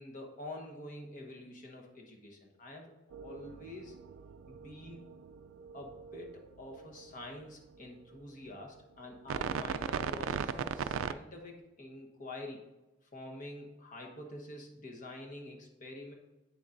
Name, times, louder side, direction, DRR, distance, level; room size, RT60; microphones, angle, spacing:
voice 1, 0.0-4.0 4.5-5.0 5.7-12.7 13.1-16.1, left 1 dB, 40° left, 1 dB, 1.1 m, -47 dB
sound 1, 3.1-7.3 9.3-11.1, right 7 dB, 85° right, 0.3 m, -38 dB
8.3 x 6.9 x 2.6 m, 1.0 s
head